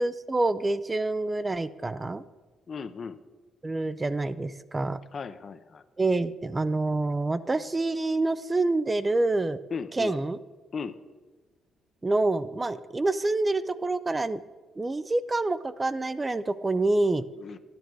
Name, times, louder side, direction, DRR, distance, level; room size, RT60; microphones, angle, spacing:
voice 1, 0.0-2.2 3.6-5.0 6.0-9.6 10.0-10.4 12.0-14.4 14.8-17.2, right 2 dB, 20° right, 13 dB, 0.4 m, -27 dB
voice 2, 2.7-3.2 5.1-5.8 9.7-10.2 10.7-11.0 17.4-17.6, left 5 dB, 45° left, 11 dB, 0.7 m, -36 dB
12.5 x 10.5 x 4.7 m, 1.3 s
cardioid pair, 90°, 0 cm